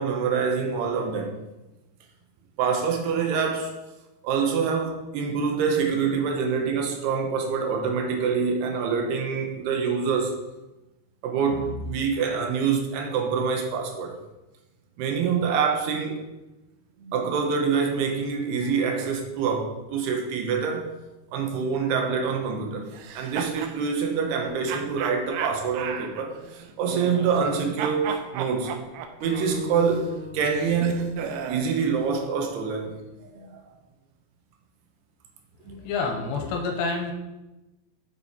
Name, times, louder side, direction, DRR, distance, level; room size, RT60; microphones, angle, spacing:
voice 1, 0.0-1.4 2.6-3.8 4.2-10.3 11.2-14.1 15.0-16.3 17.0-20.9 21.3-22.9 23.1-28.8 29.2-31.2 31.5-32.9 33.2-33.6 35.7-35.9, right 6 dB, 70° right, 2 dB, 2.8 m, -26 dB
sound 1, 22.9-23.8 24.7-27.5 27.8-31.7, right 7 dB, 90° right, 2.2 m, -35 dB
Acoustic guitar, 29.2-32.5, left 2 dB, 45° right, 2.8 m, -40 dB
voice 2, 35.7-37.1, left 4 dB, 75° left, 3 dB, 3.0 m, -28 dB
7.5 x 7.5 x 4.3 m, 1.0 s
omnidirectional pair, 5.4 m